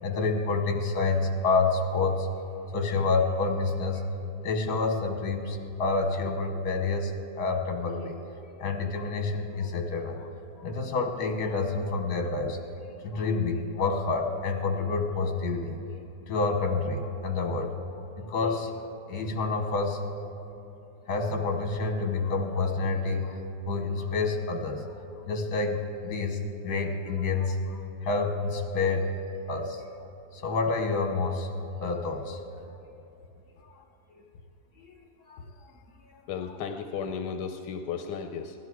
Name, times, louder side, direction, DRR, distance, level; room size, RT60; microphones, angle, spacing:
voice 1, 0.0-2.3 2.7-4.0 4.4-7.1 7.4-8.2 8.6-10.3 10.6-12.6 13.0-15.8 16.3-17.7 18.2-18.7 19.1-20.0 21.1-23.4 23.7-24.8 25.3-29.1 29.5-29.8 30.3-31.5 31.8-32.4 34.1-34.2 34.8-34.9 35.3-35.4, left 3 dB, 70° left, 3 dB, 1.8 m, -28 dB
voice 2, 36.3-38.5, left 6 dB, 90° left, 6 dB, 1.3 m, -34 dB
16.5 x 11.5 x 4.7 m, 2.9 s
omnidirectional pair, 1.8 m